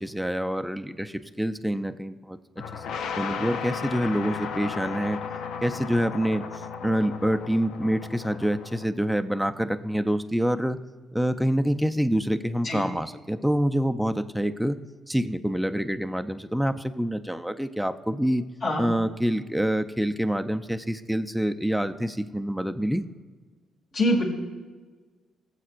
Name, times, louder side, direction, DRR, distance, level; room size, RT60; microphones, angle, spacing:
voice 1, 0.0-2.6 3.0-5.2 5.6-6.4 6.8-10.8 11.1-14.8 15.1-18.5 18.8-23.0, equal, ahead, 7 dB, 0.6 m, -26 dB
sound 1, 2.6-8.9, left 6 dB, 80° left, 0.6 m, -35 dB
voice 2, 12.6-12.8 18.6-18.8 23.9-24.2, left 1 dB, 55° left, -3 dB, 2.5 m, -23 dB
20.0 x 7.5 x 2.5 m, 1.4 s
cardioid pair, 90°, 0 cm